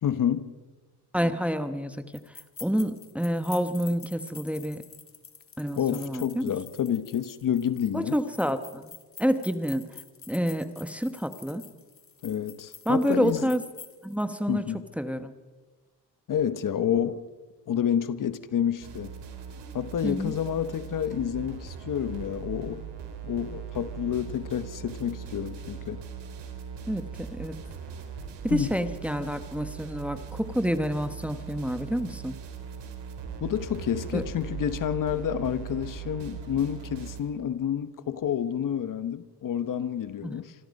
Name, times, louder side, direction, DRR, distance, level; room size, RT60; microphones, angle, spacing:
voice 1, 0.0-0.5 5.8-8.1 12.2-13.5 14.5-14.8 16.3-17.2 17.7-19.1 19.7-22.8 23.2-26.0 28.5-28.7 33.4-40.5, left 9 dB, 50° left, 1.1 m, -29 dB
voice 2, 1.1-2.0 2.6-4.8 5.6-6.5 7.9-8.9 9.2-9.9 10.3-11.6 12.9-13.6 14.0-14.6 15.0-15.3 20.0-20.3 26.9-27.6 28.4-32.3 34.1-34.2 40.2-40.4, equal, 5° right, 1.1 m, -28 dB
sound 1, 2.1-14.2, left 6 dB, 30° left, 1.7 m, -48 dB
sound 2, 18.8-37.2, right 7 dB, 80° right, 3.9 m, -40 dB
26.5 x 25.0 x 5.3 m
cardioid pair, 140°, 41 cm